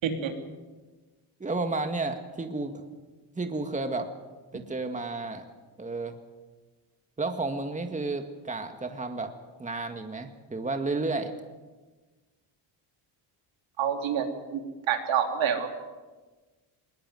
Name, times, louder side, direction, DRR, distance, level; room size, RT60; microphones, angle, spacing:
voice 1, 1.4-2.8 3.4-4.1 4.5-5.4 5.8-6.1 7.2-9.3 9.6-11.3, right 3 dB, 15° right, 6 dB, 1.9 m, -32 dB
voice 2, 13.8-15.7, right 8 dB, 75° right, 4 dB, 3.5 m, -28 dB
21.0 x 20.5 x 7.8 m, 1.3 s
cardioid pair, 100°, 46 cm